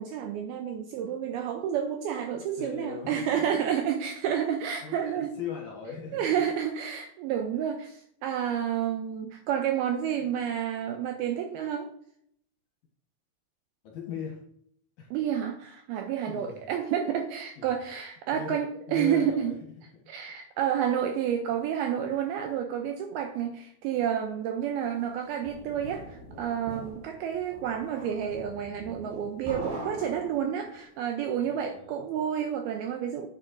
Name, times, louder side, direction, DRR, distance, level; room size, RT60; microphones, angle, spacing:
voice 1, 0.0-5.3 6.1-11.9 15.1-19.5 20.1-33.3, right 9 dB, 80° right, 5 dB, 2.3 m, -30 dB
voice 2, 2.6-3.6 4.8-6.3 7.6-7.7 13.8-14.4 15.0-15.1 16.3-16.7 17.6-17.7 18.3-18.6 18.9-19.6 31.2-32.0, left 6 dB, 60° left, -1 dB, 2.3 m, -39 dB
sound 1, 25.0-30.8, right 1 dB, 60° right, 3.9 m, -42 dB
9.3 x 7.6 x 2.6 m, 0.67 s
omnidirectional pair, 5.0 m